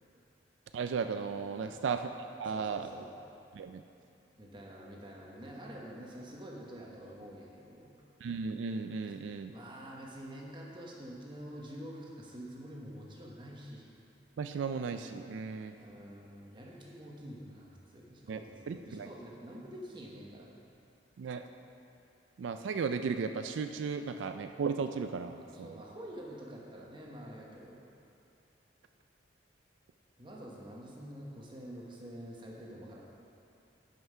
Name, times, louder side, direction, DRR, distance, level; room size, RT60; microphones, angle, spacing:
voice 1, 0.7-2.1 2.4-2.9 3.5-3.8 8.2-9.5 14.4-15.7 18.3-19.1 21.2-21.4 22.4-25.8, right 5 dB, 85° right, 8 dB, 0.4 m, -35 dB
voice 2, 1.5-1.9 2.5-3.1 4.3-7.9 9.5-13.8 15.8-20.5 25.3-27.8 30.2-33.0, equal, 25° right, -3 dB, 1.1 m, -47 dB
9.4 x 5.7 x 5.5 m, 2.6 s
head